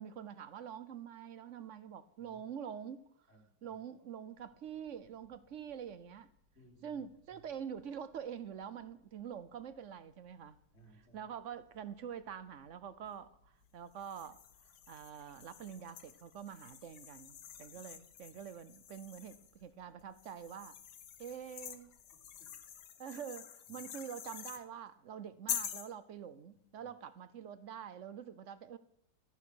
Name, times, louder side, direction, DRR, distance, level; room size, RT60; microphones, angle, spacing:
voice 1, 0.0-3.0 3.6-6.3 6.8-10.6 11.1-20.8 21.2-21.9 23.0-28.8, right 8 dB, 60° right, 0.8 m, -46 dB
voice 2, 2.2-2.7 3.3-3.8 6.5-7.0 7.3-7.4 10.7-11.3 22.1-22.5 23.7-23.9 26.5-26.9, right 2 dB, 35° left, 2.7 m, -64 dB
sound 1, 4.3-22.8, left 3 dB, 80° right, 3.2 m, -73 dB
sound 2, 14.0-19.5 20.2-24.6 25.5-25.9, left 9 dB, 65° left, 1.5 m, -46 dB
14.0 x 10.5 x 6.3 m
omnidirectional pair, 2.0 m